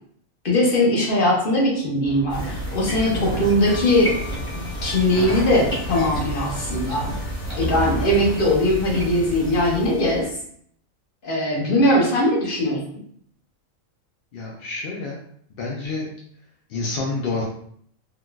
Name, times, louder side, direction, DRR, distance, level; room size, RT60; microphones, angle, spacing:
voice 1, 0.4-4.1 4.5-7.0 7.5-10.3 11.2-12.8, left 1 dB, 45° left, -3 dB, 0.9 m, -20 dB
sound 1, 2.0-8.6, right 1 dB, 25° left, 1.5 m, -32 dB
sound 2, 2.3-10.4, right 1 dB, 5° left, 1.2 m, -32 dB
sound 3, 3.7-9.5, left 3 dB, 85° left, 1.3 m, -43 dB
voice 2, 14.3-15.2 15.6-16.1 16.7-17.4, left 3 dB, 65° left, -3 dB, 0.6 m, -28 dB
3.8 x 2.4 x 2.2 m, 0.64 s
omnidirectional pair, 1.4 m